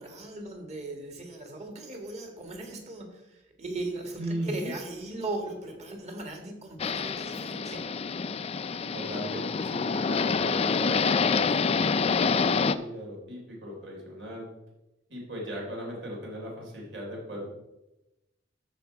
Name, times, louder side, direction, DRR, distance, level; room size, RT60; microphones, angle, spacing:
voice 1, 0.0-7.8, right 2 dB, 35° right, 2 dB, 1.9 m, -38 dB
voice 2, 4.2-4.7 8.9-14.5 15.1-17.5, equal, 70° right, -2 dB, 3.3 m, -38 dB
sound 1, 6.8-12.7, left 5 dB, 35° left, 0.3 m, -27 dB
13.0 x 5.0 x 4.5 m, 0.97 s
head